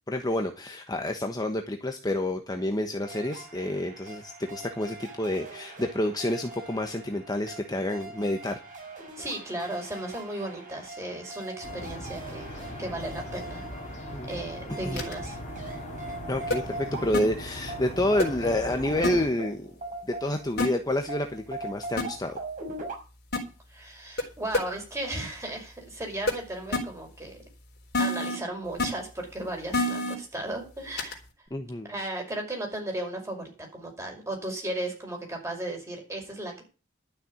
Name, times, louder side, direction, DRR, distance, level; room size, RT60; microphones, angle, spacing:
voice 1, 0.1-8.6 14.1-14.4 14.8-15.0 16.3-19.7 20.0-22.4 31.5-31.9, left 1 dB, 20° left, 5 dB, 1.2 m, -29 dB
sound 1, 3.0-20.6 21.1-23.0, right 2 dB, 40° right, 6.4 m, -41 dB
voice 2, 9.2-13.6 13.9-14.0 14.3-15.4 23.7-27.4 28.0-31.2 31.9-36.6, right 1 dB, 15° right, 1 dB, 5.5 m, -35 dB
sound 2, 11.6-19.3, left 1 dB, 40° left, 3.3 m, -39 dB
sound 3, 15.0-15.1 16.5-16.6 17.1-17.2 18.2-18.3 19.0-19.1 20.6-20.7 22.0-22.1 23.3-23.4 24.2-24.3 24.5-24.6 26.3-26.4 26.7-26.8 27.9-28.4 28.8-28.9 29.7-30.1 31.0-31.1, left 2 dB, 55° left, 3.9 m, -26 dB
12.5 x 6.9 x 8.7 m, 0.34 s
head